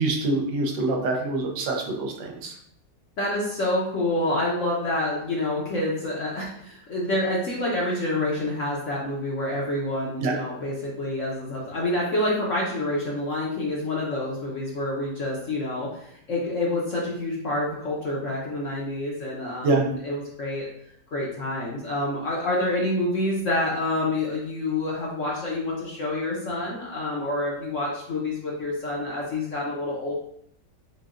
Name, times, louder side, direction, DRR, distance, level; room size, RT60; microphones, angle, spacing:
voice 1, 0.0-2.5 10.2-10.3 19.6-19.8, right 3 dB, 80° right, 1 dB, 1.4 m, -25 dB
voice 2, 3.2-20.7 21.1-30.1, left 1 dB, 60° left, -4 dB, 0.8 m, -27 dB
6.4 x 2.2 x 2.4 m, 0.70 s
omnidirectional pair, 2.0 m